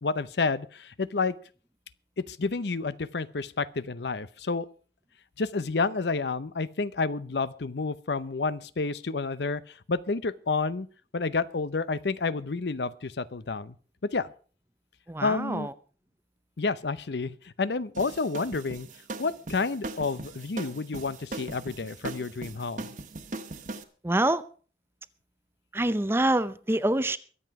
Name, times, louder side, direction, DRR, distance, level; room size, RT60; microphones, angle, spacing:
voice 1, 0.0-1.3 2.2-4.7 5.4-10.9 11.1-13.7 14.1-14.3 15.2-15.7 16.6-18.9 19.2-22.9, left 4 dB, 75° left, 0.7 m, -30 dB
voice 2, 15.1-15.7 24.0-24.4 25.7-27.2, right 1 dB, 15° right, 0.5 m, -26 dB
sound 1, 17.9-23.8, right 2 dB, 45° right, 1.3 m, -39 dB
23.0 x 7.8 x 4.8 m
head